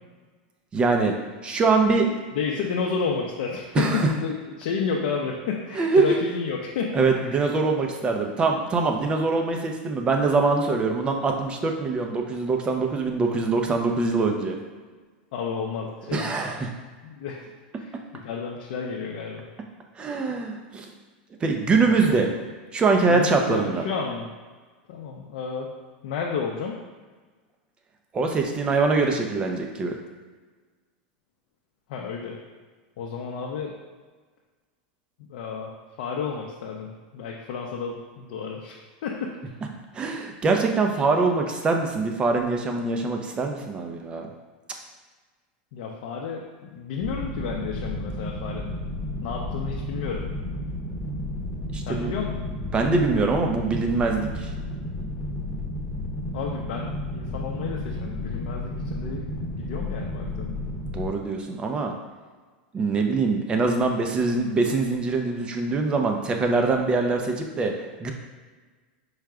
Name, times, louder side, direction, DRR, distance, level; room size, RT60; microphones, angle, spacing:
voice 1, 0.7-1.1 1.4-2.1 3.7-4.1 5.8-6.2 6.9-14.6 16.1-16.7 20.0-20.9 21.4-22.3 22.7-23.8 28.1-29.9 39.9-44.3 51.7-52.1 52.7-54.5 60.9-61.9 62.7-67.7 68.0-68.1, right 3 dB, 20° right, 3 dB, 0.5 m, -23 dB
voice 2, 2.3-7.0 15.3-16.3 17.0-17.4 17.8-19.5 21.8-22.3 23.1-24.3 24.9-25.7 26.0-26.8 31.9-32.4 33.0-33.8 35.3-38.8 39.0-39.3 45.7-48.8 49.2-50.2 51.8-52.5 56.3-60.6, left 5 dB, 65° left, -2 dB, 0.5 m, -31 dB
sound 1, 47.0-61.1, left 1 dB, 20° left, 0.9 m, -32 dB
4.7 x 2.2 x 4.8 m, 1.4 s
supercardioid pair, 130°, 5 cm